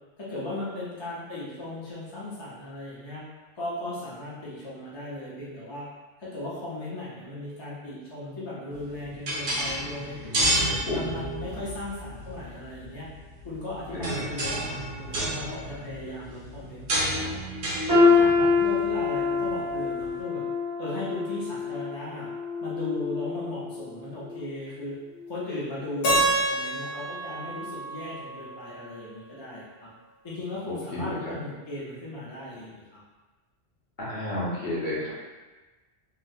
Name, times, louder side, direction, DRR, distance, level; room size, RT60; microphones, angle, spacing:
voice 1, 0.2-3.2 3.6-5.9 6.2-10.5 10.9-13.1 13.4-17.4 17.7-20.4 20.8-22.3 22.6-24.9 25.3-29.9 30.2-33.0, left 1 dB, 30° left, -8 dB, 0.6 m, -37 dB
sound 1, 8.7-20.1, right 1 dB, 70° right, 1.0 m, -32 dB
voice 2, 10.2-11.1 13.9-14.2 30.7-31.3 34.0-35.1, left 1 dB, 50° left, -7 dB, 1.0 m, -32 dB
sound 2, 17.9-23.8 24.2-24.5 25.2-25.3, left 4 dB, 25° right, 0.5 m, -25 dB
Keyboard (musical), 26.0-29.0, right 1 dB, 90° left, 1.1 m, -28 dB
3.7 x 2.1 x 2.7 m, 1.2 s
omnidirectional pair, 1.2 m